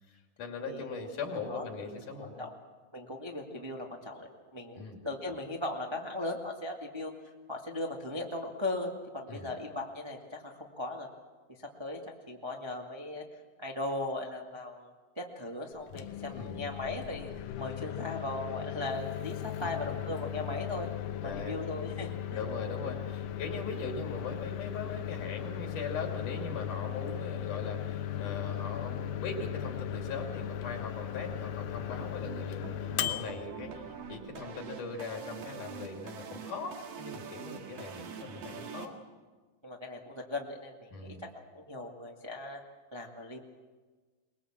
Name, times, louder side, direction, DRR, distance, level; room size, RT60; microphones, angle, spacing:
voice 1, 0.1-2.5 4.8-5.0 9.3-9.5 16.3-16.6 19.6-20.0 21.2-21.6 22.3-39.0 40.9-41.2, left 4 dB, 65° left, 2 dB, 4.0 m, -40 dB
voice 2, 2.9-7.1 7.5-11.1 11.6-13.2 13.6-17.3 17.6-20.9 21.2-22.4 32.9-33.2 39.6-42.6 42.9-43.4, left 2 dB, 15° right, 0 dB, 0.9 m, -38 dB
Microwave oven, 15.8-34.6, left 10 dB, 80° left, 2.5 m, -37 dB
sound 1, 32.0-38.9, right 7 dB, 90° right, 3.5 m, -45 dB
22.5 x 21.0 x 7.4 m, 1.4 s
omnidirectional pair, 3.9 m